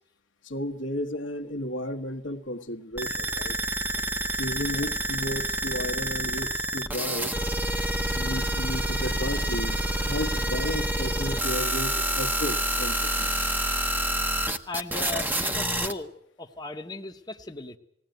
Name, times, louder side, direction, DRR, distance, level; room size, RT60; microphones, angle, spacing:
voice 1, 0.4-3.6 4.4-7.3 8.0-13.4, left 1 dB, 70° left, 1.4 m, -33 dB
sound 1, 3.0-15.9, right 1 dB, 10° right, 1.0 m, -28 dB
voice 2, 14.7-16.1 16.4-17.8, left 2 dB, 20° left, 1.0 m, -37 dB
20.0 x 17.0 x 9.2 m
head